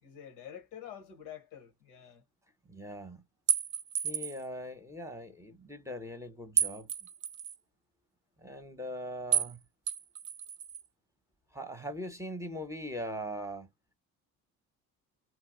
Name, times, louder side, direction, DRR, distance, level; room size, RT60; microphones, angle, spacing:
voice 1, 0.0-2.2, left 9 dB, 85° left, 1.1 m, -47 dB
voice 2, 2.7-3.2 4.0-6.9 8.4-9.6 11.5-13.7, equal, 5° right, 0.8 m, -41 dB
sound 1, 3.5-4.5 6.6-7.6 9.3-9.6 9.9-10.8, right 8 dB, 30° right, 0.4 m, -31 dB
2.8 x 2.4 x 3.7 m
hypercardioid pair, 50°, 44 cm